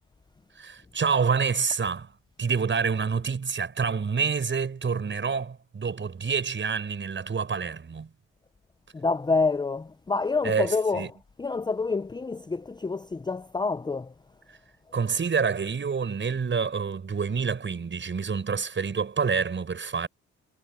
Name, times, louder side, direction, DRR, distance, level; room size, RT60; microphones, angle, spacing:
voice 1, 0.6-8.1 10.4-11.1 14.9-20.1, right 5 dB, 40° right, 7.3 m, -27 dB
voice 2, 8.9-14.1, left 4 dB, 15° left, 0.6 m, -27 dB
cardioid pair, 90°, 30 cm